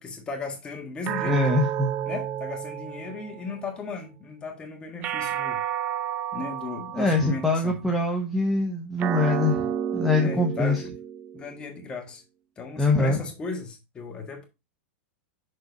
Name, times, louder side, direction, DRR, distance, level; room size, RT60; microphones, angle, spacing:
voice 1, 0.0-1.4 2.0-5.6 6.3-7.8 10.2-10.9 11.3-12.2 12.6-14.5, left 4 dB, 15° left, 1.5 m, -36 dB
sound 1, 1.1-3.6 5.0-7.6 9.0-11.6, right 9 dB, 25° right, 0.4 m, -31 dB
voice 2, 1.2-1.9 6.9-10.8 12.8-13.2, left 2 dB, ahead, 0.8 m, -24 dB
6.6 x 4.3 x 4.0 m
supercardioid pair, 160°, 6 cm